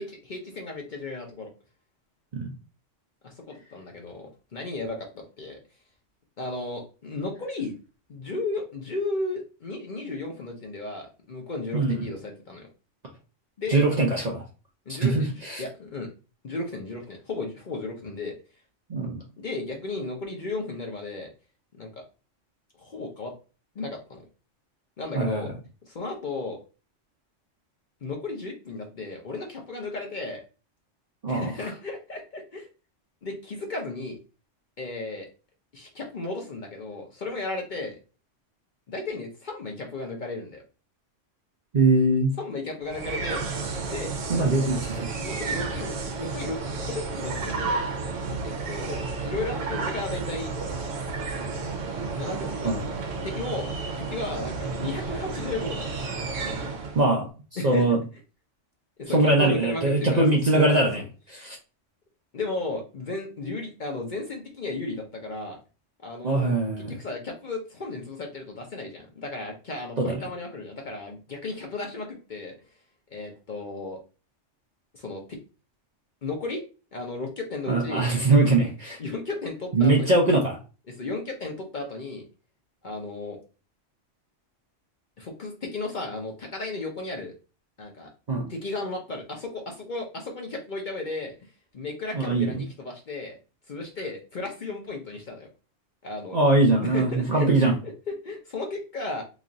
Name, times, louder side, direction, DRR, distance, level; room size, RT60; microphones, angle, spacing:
voice 1, 0.0-1.5 3.2-5.6 6.4-7.7 8.1-12.7 13.6-13.8 14.9-16.1 16.4-18.4 19.4-21.3 21.7-22.0 22.8-23.3 23.7-24.2 25.0-25.5 25.8-26.6 28.0-30.4 31.3-32.7 33.2-34.2 34.8-35.3 35.7-38.0 38.9-40.6 42.4-43.5 43.8-44.1 45.1-47.8 48.4-50.5 52.1-53.0 53.2-53.7 54.0-56.3 57.6-57.8 59.0-60.9 61.3-61.5 62.3-65.6 66.0-72.5 73.1-74.0 74.9-75.4 76.2-76.6 76.9-78.1 79.0-80.2 80.9-82.3 82.8-83.4 85.2-87.3 87.8-88.1 88.5-91.3 91.7-93.4 93.7-95.5 96.0-96.4 96.8-99.2, left 2 dB, 45° left, 1 dB, 0.7 m, -34 dB
voice 2, 11.7-12.1 13.7-14.4 14.9-15.6 18.9-19.2 25.1-25.4 31.2-31.5 41.7-42.4 44.3-45.1 52.6-52.8 57.0-57.3 57.6-58.0 59.1-61.6 66.2-66.9 70.0-70.2 77.7-79.0 79.7-80.6 88.3-88.5 92.1-92.6 96.3-97.7, right 2 dB, 45° right, 0 dB, 0.6 m, -22 dB
sound 1, 42.8-57.1, right 4 dB, 80° right, 1.1 m, -32 dB
3.0 x 2.4 x 3.8 m, 0.34 s
omnidirectional pair, 1.3 m